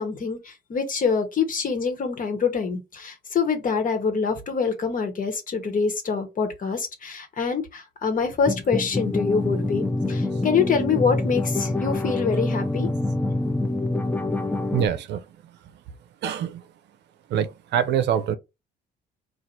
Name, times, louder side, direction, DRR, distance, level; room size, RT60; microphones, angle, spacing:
voice 1, 0.0-12.9, left 5 dB, 45° left, 1.3 m, -25 dB
sound 1, 8.3-14.9, left 2 dB, 10° left, 0.5 m, -26 dB
voice 2, 14.7-15.2 16.2-16.6 17.3-18.4, right 9 dB, 65° right, 0.6 m, -24 dB
3.9 x 2.5 x 4.4 m
cardioid pair, 90°, 19 cm